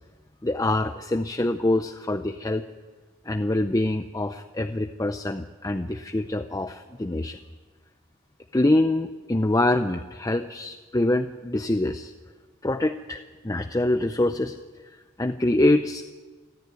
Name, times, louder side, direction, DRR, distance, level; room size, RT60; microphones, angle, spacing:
voice 1, 0.4-2.6 3.3-7.4 8.5-12.1 12.6-14.6 15.2-16.1, left 1 dB, 15° left, 7 dB, 0.6 m, -25 dB
29.0 x 10.5 x 9.4 m, 1.4 s
head